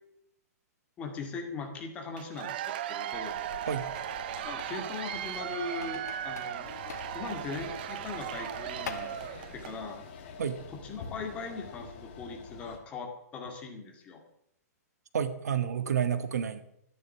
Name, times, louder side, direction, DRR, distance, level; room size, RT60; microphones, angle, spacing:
voice 1, 1.0-3.4 4.4-6.7 7.1-9.1 9.5-10.0 10.8-14.2, left 4 dB, 15° left, 3 dB, 2.1 m, -40 dB
Cheering / Applause / Crowd, 2.2-9.8, right 11 dB, 35° right, 0.7 m, -37 dB
sound 1, 3.1-9.3, left 7 dB, 80° left, 1.6 m, -47 dB
sound 2, 6.6-12.8, left 5 dB, 35° left, 2.6 m, -47 dB
voice 2, 15.1-16.6, right 8 dB, 75° right, 11 dB, 1.7 m, -29 dB
13.5 x 11.5 x 7.1 m, 0.75 s
hypercardioid pair, 175°, 9 cm